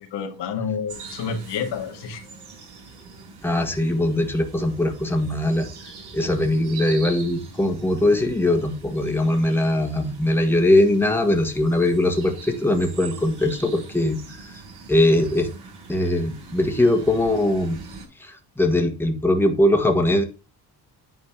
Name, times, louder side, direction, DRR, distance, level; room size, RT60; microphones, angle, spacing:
voice 1, 0.0-2.2 6.4-6.6, left 6 dB, 80° left, 2.0 m, -29 dB
sound 1, 0.9-18.1, right 4 dB, 70° right, 6.2 m, -42 dB
voice 2, 3.4-5.7 6.1-14.6 14.9-15.5 15.9-17.8 18.2-20.2, left 1 dB, 5° left, 1.6 m, -21 dB
9.7 x 4.3 x 5.9 m
cardioid pair, 105°, 40 cm